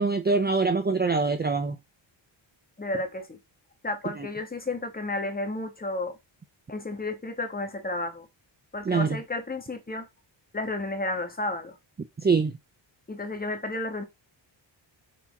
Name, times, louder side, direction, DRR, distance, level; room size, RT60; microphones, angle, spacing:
voice 1, 0.0-1.8 4.2-4.3 8.9-9.2 12.2-12.5, right 4 dB, 20° right, 0.6 m, -24 dB
voice 2, 2.8-3.4 3.8-6.2 6.7-8.3 8.7-10.1 10.5-11.8 13.1-14.0, left 2 dB, 20° left, 1.4 m, -32 dB
5.9 x 4.3 x 4.1 m
wide cardioid pair, 155°, 47 cm